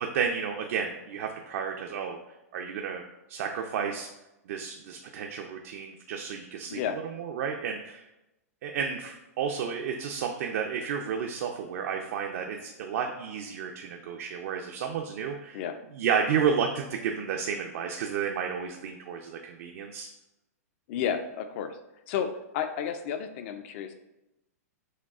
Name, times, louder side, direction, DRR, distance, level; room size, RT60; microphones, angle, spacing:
voice 1, 0.0-2.2 2.5-3.0 3.3-4.1 4.5-6.8 7.2-8.0 8.6-15.6 15.9-20.1, right 7 dB, 60° right, 2 dB, 0.4 m, -31 dB
voice 2, 20.9-21.8 22.1-23.9, left 8 dB, 50° left, 9 dB, 0.4 m, -32 dB
6.3 x 2.3 x 2.4 m, 0.93 s
hypercardioid pair, 125°, 9 cm